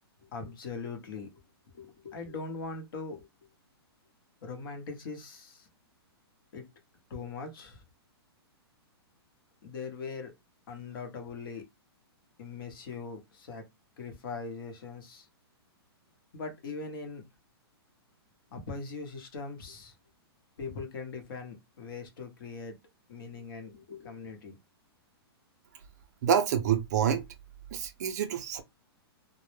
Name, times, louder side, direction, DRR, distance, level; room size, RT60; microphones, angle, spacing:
voice 1, 0.3-1.4 1.7-3.3 4.4-5.7 6.5-6.6 7.1-7.8 9.6-10.3 10.7-11.6 12.4-13.6 14.0-15.3 16.3-17.2 18.5-19.9 20.6-22.8 23.1-24.6, left 4 dB, 55° left, 0.8 m, -41 dB
voice 2, 26.2-27.2 27.7-28.6, right 8 dB, 40° right, 0.4 m, -27 dB
2.0 x 2.0 x 3.0 m
hypercardioid pair, 160°, 14 cm